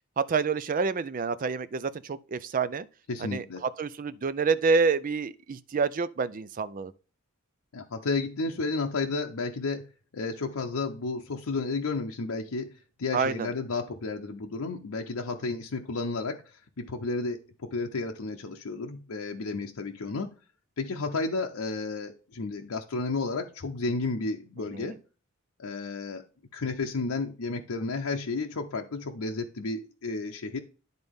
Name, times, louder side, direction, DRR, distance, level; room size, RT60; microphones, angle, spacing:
voice 1, 0.2-2.9 3.2-6.9 13.1-13.5 24.7-24.9, right 5 dB, 40° right, 0.4 m, -28 dB
voice 2, 3.1-3.6 7.7-9.9 10.1-12.7 13.0-20.4 20.8-25.0 25.6-26.2 26.5-30.6, left 3 dB, 85° left, 0.6 m, -32 dB
10.5 x 4.0 x 3.5 m
head